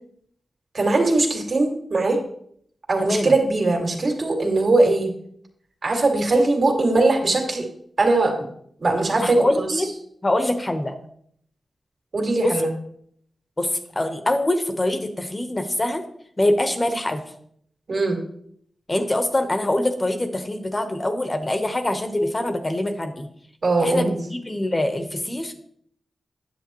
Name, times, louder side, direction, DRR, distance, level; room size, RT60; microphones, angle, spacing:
voice 1, 0.7-2.2 2.9-5.1 5.8-7.7 8.0-8.3 8.8-9.8 12.1-12.7 17.9-18.2 23.6-24.2, right 2 dB, 55° right, 1 dB, 2.2 m, -20 dB
voice 2, 3.0-3.3 9.2-9.9 10.2-10.9 12.4-12.5 13.6-16.0 16.4-17.2 18.9-23.3 23.8-25.6, left 1 dB, 25° left, 6 dB, 1.0 m, -24 dB
9.9 x 7.8 x 3.0 m, 0.67 s
wide cardioid pair, 90°, 0 cm